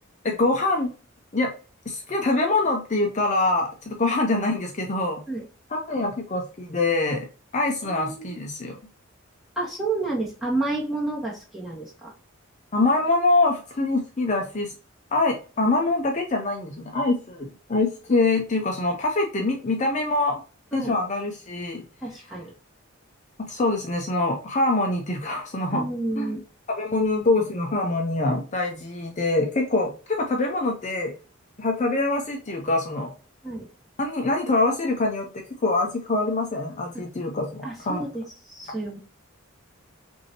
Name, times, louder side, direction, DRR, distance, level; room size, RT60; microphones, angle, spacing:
voice 1, 0.2-0.9 1.3-1.5 1.9-5.2 5.7-7.3 7.5-8.8 12.7-14.7 15.1-20.4 20.7-21.8 23.4-25.8 26.2-26.3 26.7-31.1 31.6-33.1 34.0-35.3 35.6-38.1, left 2 dB, 35° left, 2 dB, 0.6 m, -24 dB
voice 2, 7.9-8.4 9.6-12.1 20.7-21.0 22.0-22.5 25.7-26.4 33.4-33.7 37.6-39.0, right 2 dB, ahead, -5 dB, 1.7 m, -30 dB
6.0 x 2.7 x 2.8 m, 0.36 s
head